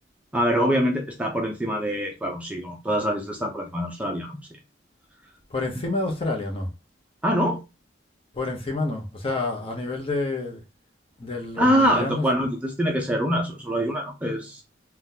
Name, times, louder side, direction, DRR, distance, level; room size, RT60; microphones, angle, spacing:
voice 1, 0.3-4.4 7.2-7.6 11.6-14.6, equal, 5° right, 0.5 m, -24 dB
voice 2, 5.5-6.7 8.3-10.6 11.2-12.2, left 2 dB, 30° left, 0.7 m, -28 dB
3.7 x 2.3 x 2.8 m
head